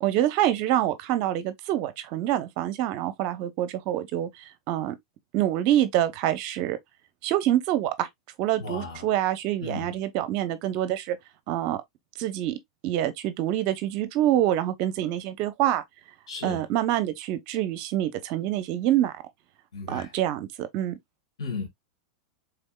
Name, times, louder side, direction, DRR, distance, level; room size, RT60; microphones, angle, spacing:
voice 1, 0.0-4.9 5.3-6.8 7.2-8.1 8.4-11.2 11.5-11.8 12.2-12.6 12.8-15.8 16.4-19.2 19.9-21.0, right 12 dB, 50° right, 0.8 m, -26 dB
voice 2, 8.6-9.1 9.6-9.9 16.3-16.6 19.7-20.1 21.4-21.7, left 3 dB, 80° left, 1.9 m, -35 dB
3.5 x 3.4 x 2.3 m
hypercardioid pair, 105°, 3 cm